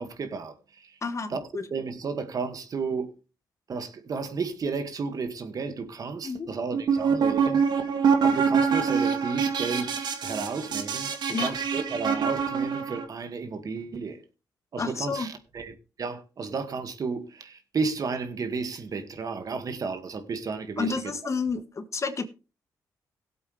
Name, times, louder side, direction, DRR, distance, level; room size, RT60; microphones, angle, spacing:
voice 1, 0.0-0.9 1.3-3.1 3.7-7.8 8.2-14.2 14.7-21.0, right 4 dB, 55° right, 2.0 m, -33 dB
voice 2, 1.0-1.6 6.2-6.5 11.3-11.5 14.8-15.3 20.8-22.3, left 4 dB, 40° left, 1.6 m, -30 dB
sound 1, 6.7-13.1, right 6 dB, 75° right, 2.0 m, -25 dB
17.5 x 8.1 x 3.3 m
cardioid pair, 75°, 7 cm